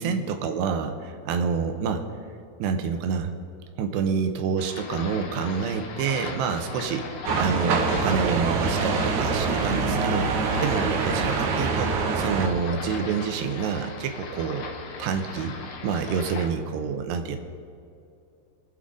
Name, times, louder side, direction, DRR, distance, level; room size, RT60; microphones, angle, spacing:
voice 1, 0.0-2.1 2.6-3.3 3.8-7.1 7.3-10.3 10.6-14.7 15.0-15.5 15.8-17.4, right 6 dB, 90° right, 6 dB, 3.0 m, -27 dB
sound 1, 4.6-16.5, left 4 dB, 65° left, 2.6 m, -38 dB
sound 2, 7.3-12.5, right 4 dB, 65° right, 2.1 m, -25 dB
23.5 x 8.2 x 3.8 m, 2.4 s
omnidirectional pair, 4.8 m